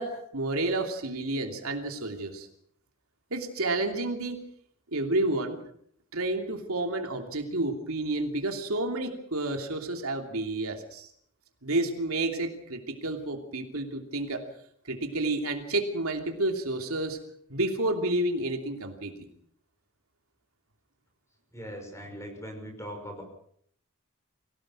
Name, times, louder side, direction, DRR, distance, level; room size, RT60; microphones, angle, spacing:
voice 1, 0.0-2.5 3.3-4.4 4.9-5.6 6.1-11.1 11.6-14.4 14.8-17.2 17.5-19.3, right 2 dB, 75° right, 4 dB, 3.0 m, -30 dB
voice 2, 21.5-23.2, equal, 15° left, 4 dB, 6.0 m, -40 dB
24.5 x 17.5 x 6.4 m, 0.66 s
head